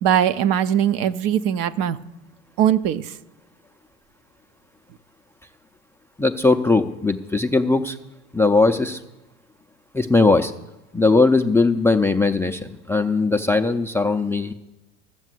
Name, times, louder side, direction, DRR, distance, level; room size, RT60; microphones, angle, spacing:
voice 1, 0.0-2.0 2.6-3.1, right 10 dB, 50° right, 12 dB, 0.7 m, -20 dB
voice 2, 6.2-8.0 8.3-9.0 9.9-10.5 10.9-14.5, left 3 dB, 5° left, 7 dB, 0.5 m, -19 dB
14.0 x 7.2 x 7.8 m, 1.0 s
hypercardioid pair, 90°, 43 cm